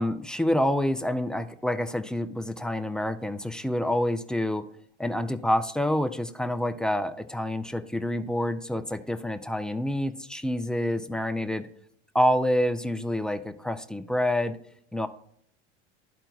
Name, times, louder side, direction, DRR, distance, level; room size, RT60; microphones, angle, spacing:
voice 1, 0.0-4.6 5.0-11.7 12.1-14.6 14.9-15.1, left 1 dB, ahead, 8 dB, 0.3 m, -27 dB
12.5 x 4.4 x 2.3 m, 0.67 s
hypercardioid pair, 100°, 35 cm